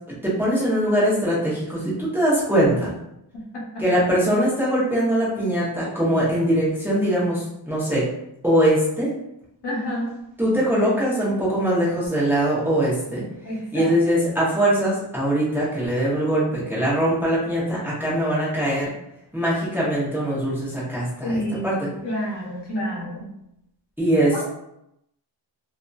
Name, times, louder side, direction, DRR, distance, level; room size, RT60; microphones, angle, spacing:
voice 1, 0.1-2.9 3.8-8.1 8.4-9.1 10.4-13.2 13.7-18.9 19.3-21.8 24.0-24.4, right 1 dB, 5° right, -8 dB, 0.8 m, -22 dB
voice 2, 9.6-10.1 13.4-14.0 21.2-23.3, equal, 65° left, -4 dB, 0.9 m, -29 dB
2.7 x 2.5 x 2.3 m, 0.82 s
wide cardioid pair, 145°, 44 cm